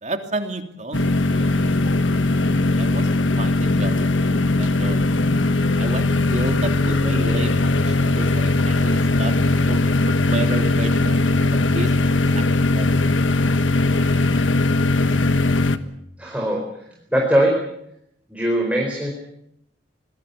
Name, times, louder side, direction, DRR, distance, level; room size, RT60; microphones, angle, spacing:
voice 1, 0.0-1.7 2.8-3.1 3.4-4.1 4.6-5.0 5.8-11.2 11.5-11.9 12.3-12.4 12.7-13.0, right 2 dB, 40° right, 5 dB, 2.7 m, -31 dB
sound 1, 0.9-15.8, left 2 dB, 85° left, 1.4 m, -19 dB
voice 2, 16.2-16.6 17.1-17.6 18.3-19.1, right 1 dB, 5° right, 0 dB, 4.5 m, -20 dB
25.5 x 20.0 x 7.1 m, 0.77 s
head